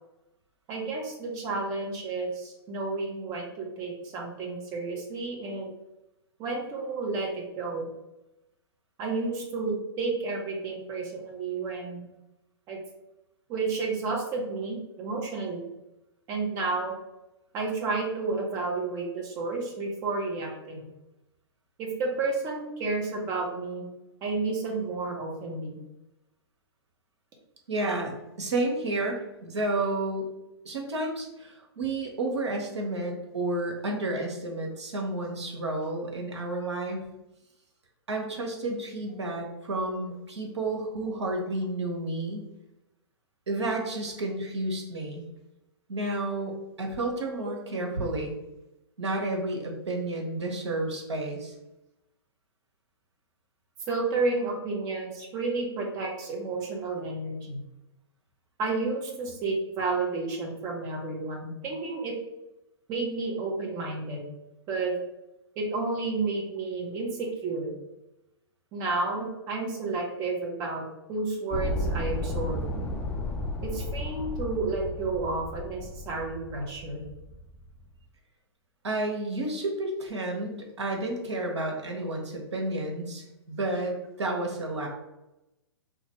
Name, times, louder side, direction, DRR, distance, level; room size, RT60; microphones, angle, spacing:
voice 1, 0.7-5.7 6.4-7.9 9.0-12.1 12.7-12.8 13.5-15.6 16.3-16.9 17.5-20.9 21.8-23.8 24.2-25.8 53.9-57.6 58.6-62.1 62.9-64.2 64.7-65.0 65.6-67.7 68.7-72.6 73.6-77.1, right 3 dB, 25° right, -1 dB, 0.8 m, -31 dB
voice 2, 27.7-30.3 30.6-37.0 38.1-42.5 43.5-45.2 45.9-48.3 49.0-51.5 78.8-84.9, right 2 dB, 90° right, 1 dB, 1.0 m, -31 dB
sound 1, 71.5-77.8, left 1 dB, 10° left, 0.4 m, -33 dB
2.8 x 2.5 x 4.3 m, 0.93 s
hypercardioid pair, 135°, 14 cm